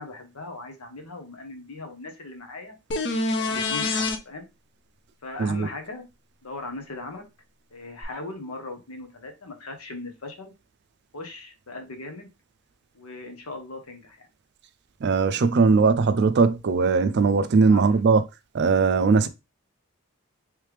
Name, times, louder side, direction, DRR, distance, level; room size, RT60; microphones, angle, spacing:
voice 1, 0.0-2.8 3.2-4.5 5.2-6.0 6.4-7.2 7.7-10.5 11.1-12.3 12.9-14.3 17.6-17.8, left 2 dB, 90° left, 1.0 m, -39 dB
sound 1, 2.9-4.2 8.0-8.1, left 3 dB, 55° left, 0.6 m, -25 dB
voice 2, 15.0-18.2 18.5-19.3, right 4 dB, 50° right, 0.4 m, -19 dB
3.3 x 3.3 x 3.2 m
head